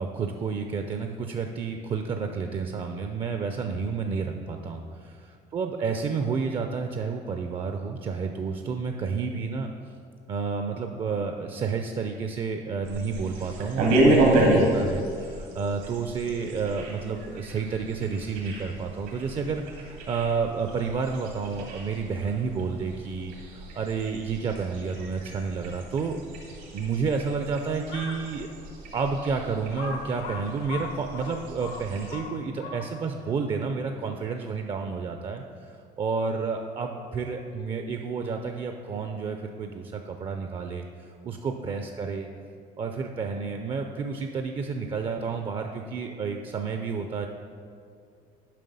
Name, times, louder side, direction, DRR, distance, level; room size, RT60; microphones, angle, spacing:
voice 1, 0.0-9.7 10.3-26.2 26.7-28.5 28.9-42.3 42.8-47.3, right 5 dB, 35° right, 5 dB, 0.4 m, -30 dB
sound 1, 12.8-32.2, right 1 dB, 85° right, 1.9 m, -30 dB
Crow, 27.8-28.3 28.9-29.0 29.7-33.1, left 4 dB, 85° left, 1.1 m, -38 dB
7.5 x 5.4 x 5.4 m, 2.3 s
cardioid pair, 130°, 16 cm